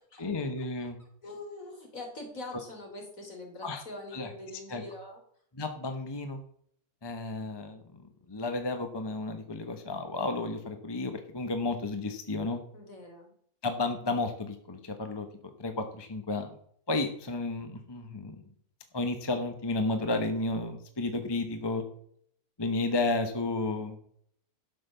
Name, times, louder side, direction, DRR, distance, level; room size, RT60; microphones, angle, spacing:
voice 1, 0.2-1.0 3.6-3.8 4.1-4.3 4.7-4.8 5.5-6.4 7.0-7.8 8.3-12.6 13.6-16.5 16.9-18.4 18.9-21.8 22.6-24.0, left 2 dB, 20° left, 6 dB, 1.1 m, -32 dB
voice 2, 0.8-5.2 12.7-13.3, left 2 dB, 60° left, 2 dB, 3.6 m, -44 dB
12.0 x 6.1 x 6.8 m, 0.64 s
omnidirectional pair, 1.6 m